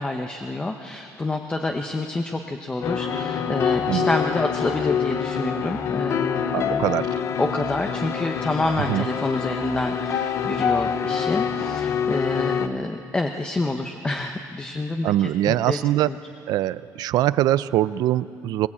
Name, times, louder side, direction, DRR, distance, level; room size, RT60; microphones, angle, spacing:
voice 1, 0.0-6.8 7.4-15.1 15.4-16.2, left 2 dB, 15° left, 4 dB, 0.9 m, -28 dB
sound 1, 2.8-12.7, left 7 dB, 45° left, 0.8 m, -26 dB
voice 2, 6.5-7.1 8.9-9.1 15.0-16.1 16.5-18.7, right 14 dB, 75° right, 16 dB, 0.5 m, -22 dB
21.5 x 19.5 x 8.6 m, 2.4 s
cardioid pair, 165°, 7 cm